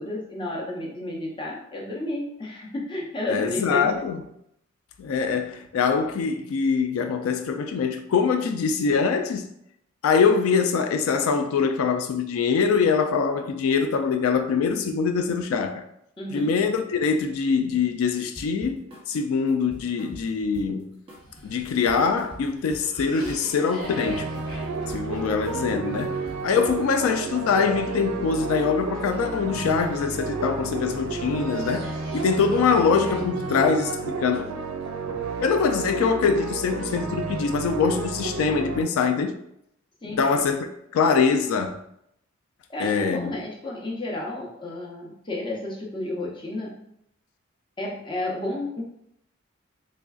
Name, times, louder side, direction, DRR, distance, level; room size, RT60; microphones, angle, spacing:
voice 1, 0.0-3.9 16.2-16.6 40.0-40.4 42.7-46.8 47.8-48.8, left 1 dB, 20° left, 0.6 m, -32 dB
voice 2, 3.3-4.2 5.0-9.5 10.0-15.8 16.3-20.9 21.4-24.3 24.9-34.5 35.4-39.4 40.0-41.8 42.8-43.4, left 5 dB, 85° left, 0.3 m, -23 dB
sound 1, 18.3-19.1 19.5-20.8 21.1-21.4 21.6-23.6 23.8-25.1 25.4-25.7 26.0-27.0, right 1 dB, 25° right, 0.8 m, -44 dB
Cough, 21.1-30.4 30.9-34.9, equal, 45° left, 1.1 m, -44 dB
sound 2, 23.8-38.8, right 4 dB, 85° right, 0.4 m, -31 dB
3.7 x 3.2 x 2.3 m
head